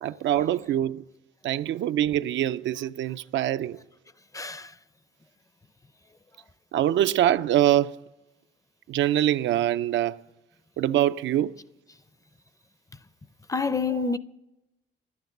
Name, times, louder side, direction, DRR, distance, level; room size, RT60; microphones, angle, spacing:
voice 1, 0.0-1.0 1.4-3.8 6.7-7.9 8.9-10.2 10.8-11.5 14.0-14.1, right 12 dB, 70° right, 0.4 m, -24 dB
voice 2, 4.3-4.7 13.5-14.2, left 4 dB, 15° left, 0.5 m, -27 dB
11.5 x 9.4 x 6.5 m
cardioid pair, 90°, 20 cm